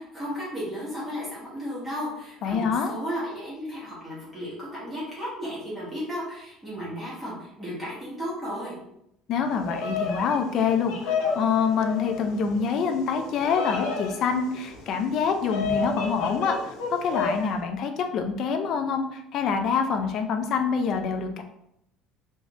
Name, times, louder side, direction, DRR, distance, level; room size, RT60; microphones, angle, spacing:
voice 1, 0.0-8.8, equal, 5° right, -8 dB, 1.3 m, -34 dB
voice 2, 2.4-2.9 9.3-16.7 17.0-21.4, left 6 dB, 40° left, 6 dB, 0.4 m, -26 dB
Bird vocalization bird call bird song, 9.5-17.5, left 5 dB, 70° left, 0.7 m, -32 dB
3.3 x 2.7 x 2.9 m, 0.78 s
cardioid pair, 175°, 0 cm